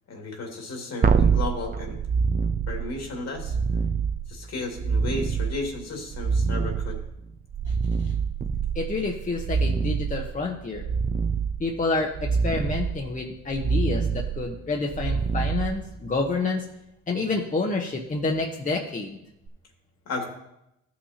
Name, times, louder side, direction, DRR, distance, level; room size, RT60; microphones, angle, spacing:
voice 1, 0.1-2.0 2.7-3.6 4.3-7.0 20.1-20.3, left 2 dB, 60° left, 1 dB, 2.2 m, -33 dB
sound 1, 1.0-16.3 19.5-19.6, right 5 dB, 30° right, 0.6 m, -26 dB
voice 2, 8.7-10.8 11.6-16.6 17.1-19.2, left 3 dB, 25° left, 1 dB, 1.0 m, -28 dB
13.5 x 5.8 x 2.8 m, 0.83 s
cardioid pair, 90°, 30 cm